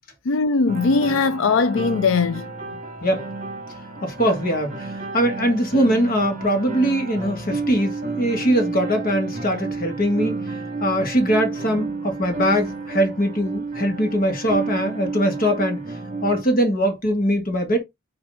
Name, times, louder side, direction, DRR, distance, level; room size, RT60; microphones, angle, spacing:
voice 1, 0.3-2.5, left 4 dB, 70° left, 0.5 m, -20 dB
sound 1, 0.7-16.4, right 3 dB, 40° right, 2.3 m, -31 dB
voice 2, 4.0-10.4 10.8-15.8 16.2-17.8, equal, 45° left, 2.4 m, -21 dB
6.8 x 4.0 x 4.0 m
head